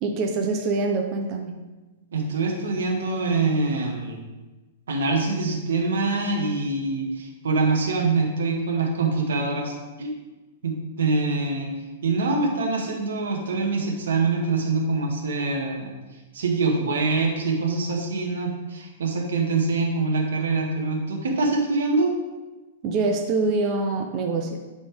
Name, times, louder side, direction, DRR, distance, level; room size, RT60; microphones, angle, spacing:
voice 1, 0.0-1.6 22.8-24.6, right 3 dB, 25° right, 2 dB, 0.7 m, -25 dB
voice 2, 2.1-4.2 4.9-10.1 10.6-11.7 12.0-15.9 16.3-22.1, right 3 dB, 85° right, 1 dB, 1.7 m, -24 dB
11.5 x 4.3 x 3.5 m, 1.2 s
hypercardioid pair, 165°, 0 cm